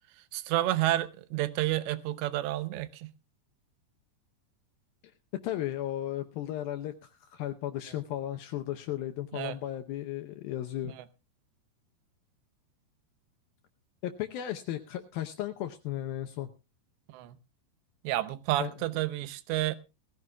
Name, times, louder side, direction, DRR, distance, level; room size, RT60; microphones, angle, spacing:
voice 1, 0.1-3.1 9.3-9.6 10.8-11.1 17.1-17.4 18.0-19.8, right 15 dB, 80° right, 3.0 m, -30 dB
voice 2, 5.4-10.9 14.0-16.5 18.6-18.7, left 12 dB, 75° left, 2.2 m, -35 dB
20.0 x 15.0 x 2.3 m
omnidirectional pair, 5.0 m